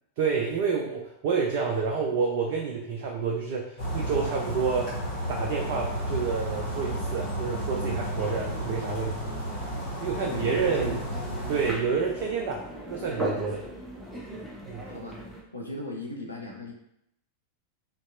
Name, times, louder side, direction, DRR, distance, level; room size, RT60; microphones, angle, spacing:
voice 1, 0.2-5.0 5.3-9.1 10.0-11.0 11.5-13.6 14.6-14.8, right 5 dB, 50° right, 0 dB, 0.3 m, -29 dB
sound 1, 3.8-11.7, right 1 dB, 45° left, 1.3 m, -32 dB
voice 2, 10.2-11.1 14.9-15.2 15.5-16.7, left 1 dB, 85° left, -1 dB, 0.5 m, -38 dB
sound 2, 10.3-15.4, equal, ahead, 0.6 m, -38 dB
2.7 x 2.2 x 2.4 m, 0.77 s
figure-of-eight pair, 90°, 0 cm